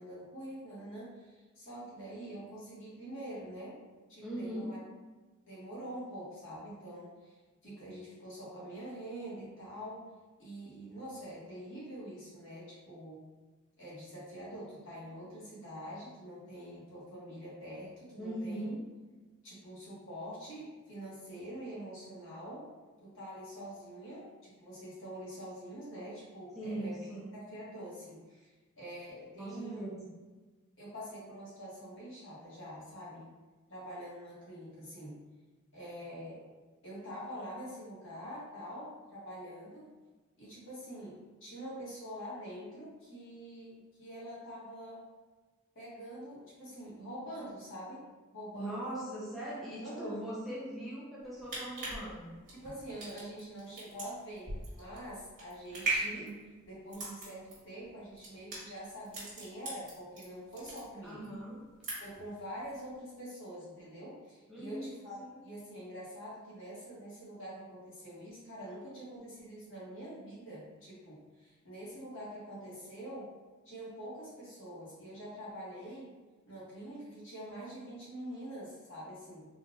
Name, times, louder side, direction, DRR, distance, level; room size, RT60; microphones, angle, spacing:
voice 1, 0.0-3.8 4.1-4.8 5.5-7.4 7.6-10.0 10.4-13.2 13.8-18.7 19.4-22.7 23.0-28.5 28.8-29.8 30.8-33.3 33.7-35.2 35.7-36.4 36.8-39.9 40.4-45.0 45.7-48.1 48.3-49.1 49.8-50.1 52.5-56.4 56.6-61.3 62.0-73.3 73.6-76.1 76.4-79.5, equal, 60° left, -7 dB, 1.4 m, -45 dB
voice 2, 4.2-4.8 18.2-18.8 26.5-27.4 29.4-30.1 48.5-52.3 61.0-61.6 64.5-64.9 65.2-65.3, right 1 dB, ahead, -8 dB, 0.5 m, -40 dB
sound 1, 51.2-60.2 60.5-61.3 61.6-62.3 62.6-62.7, right 2 dB, 40° right, 1.4 m, -39 dB
3.7 x 2.4 x 2.7 m, 1.3 s
head